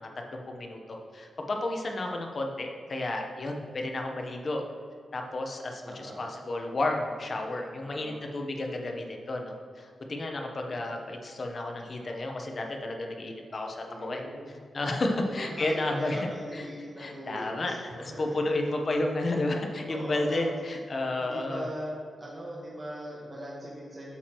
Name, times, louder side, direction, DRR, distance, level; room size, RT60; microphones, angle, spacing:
voice 1, 0.0-4.6 5.1-14.2 14.7-16.3 16.5-16.7 17.0-21.6, left 2 dB, 40° left, 2 dB, 0.9 m, -32 dB
voice 2, 5.8-6.2 7.8-8.2 13.9-14.5 15.1-18.4 19.9-20.6 21.2-21.9 22.2-24.2, equal, 30° right, -5 dB, 1.4 m, -40 dB
8.5 x 7.2 x 3.0 m, 2.1 s
wide cardioid pair, 115°, 0 cm